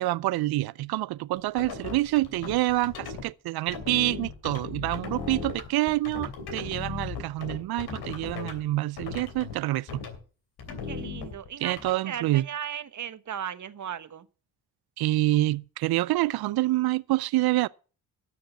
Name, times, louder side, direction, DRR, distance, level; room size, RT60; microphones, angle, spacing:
voice 1, 0.0-10.0 11.6-12.4 15.0-17.7, right 17 dB, 75° right, 0.5 m, -27 dB
sound 1, 1.4-3.2 3.7-8.6 9.0-9.5 9.9-10.2 10.6-11.9, left 5 dB, 80° left, 3.1 m, -37 dB
voice 2, 10.7-14.3, right 9 dB, 50° right, 1.1 m, -37 dB
12.5 x 6.6 x 6.8 m
cardioid pair, 80°, 38 cm